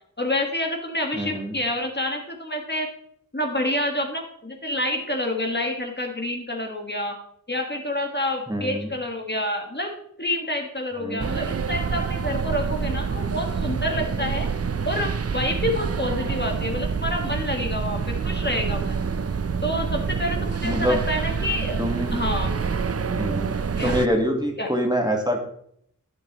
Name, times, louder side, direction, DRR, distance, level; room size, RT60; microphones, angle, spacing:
voice 1, 0.2-2.9 3.3-7.2 7.5-14.5 14.8-19.1 19.6-21.8 22.1-22.6 23.8-24.0 24.6-24.7, left 1 dB, 30° left, 2 dB, 1.6 m, -28 dB
voice 2, 1.1-1.6 8.5-8.9 11.0-11.3 20.6-21.0 21.8-22.1 23.1-25.4, equal, 10° right, 2 dB, 1.5 m, -25 dB
sound 1, 11.2-24.1, right 5 dB, 45° right, 0.5 m, -27 dB
10.5 x 9.5 x 3.0 m, 0.69 s
wide cardioid pair, 45°, 34 cm